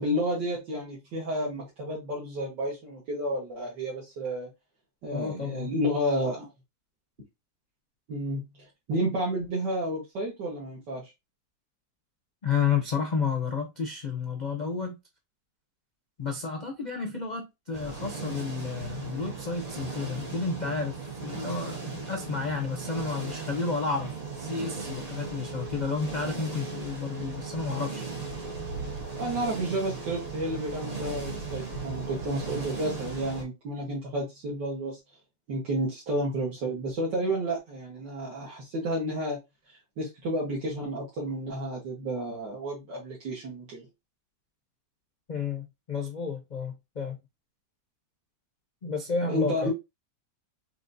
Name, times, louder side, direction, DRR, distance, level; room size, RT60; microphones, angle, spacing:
voice 1, 0.0-4.5 5.0-6.5 8.1-8.4 8.9-11.1 29.2-35.0 35.5-39.4 40.0-43.9 49.3-49.7, right 1 dB, 75° right, 2.0 m, -31 dB
voice 2, 5.1-5.7 12.4-15.0 16.2-24.1 24.4-28.0 45.3-47.2 48.8-49.7, left 5 dB, 85° left, 0.4 m, -31 dB
sound 1, 17.7-33.4, right 4 dB, 30° right, 0.9 m, -37 dB
5.2 x 2.8 x 2.6 m
omnidirectional pair, 1.9 m